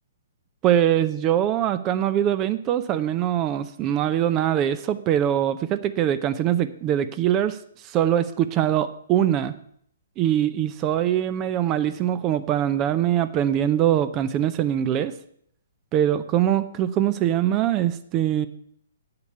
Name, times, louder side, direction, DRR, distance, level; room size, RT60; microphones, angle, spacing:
voice 1, 0.6-9.5 10.2-15.1 15.9-18.5, right 11 dB, 25° right, 13 dB, 0.6 m, -23 dB
8.5 x 6.8 x 7.9 m, 0.67 s
figure-of-eight pair, 120°, 0 cm